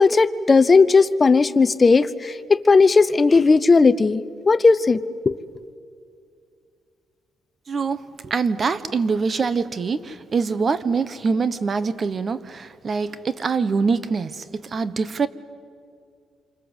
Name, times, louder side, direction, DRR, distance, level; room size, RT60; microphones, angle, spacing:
voice 1, 0.0-5.3, left 4 dB, 30° left, 13 dB, 0.8 m, -16 dB
voice 2, 7.7-15.3, right 5 dB, 40° right, 15 dB, 1.2 m, -24 dB
28.0 x 25.5 x 8.1 m, 2.3 s
cardioid pair, 90°, 0 cm